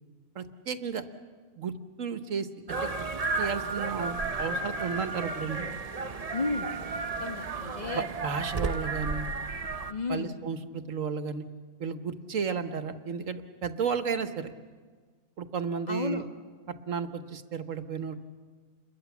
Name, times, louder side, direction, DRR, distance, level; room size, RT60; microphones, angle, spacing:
voice 1, 0.3-1.0 1.6-1.7 2.0-2.9 3.4-5.7 7.9-9.3 10.1-11.4 11.8-14.5 15.4-16.2 16.9-18.2, right 6 dB, 80° right, 9 dB, 1.6 m, -33 dB
sound 1, 2.7-9.9, right 3 dB, 35° right, 0.7 m, -33 dB
voice 2, 6.3-6.7 7.2-8.1 9.9-10.3 15.9-16.3, left 3 dB, 35° left, 5 dB, 1.6 m, -33 dB
28.5 x 22.0 x 7.2 m, 1.5 s
omnidirectional pair, 1.3 m